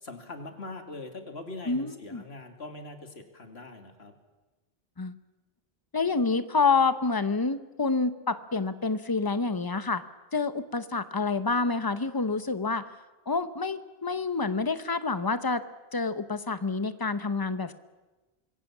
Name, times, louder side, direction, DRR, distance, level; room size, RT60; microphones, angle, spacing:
voice 1, 0.0-4.1, left 2 dB, 75° left, 6 dB, 2.7 m, -42 dB
voice 2, 1.7-2.2 5.0-5.2 5.9-10.0 10.3-12.9 13.3-15.6 15.9-17.7, left 4 dB, 20° left, 12 dB, 0.9 m, -28 dB
26.0 x 22.0 x 7.4 m, 1.2 s
omnidirectional pair, 1.1 m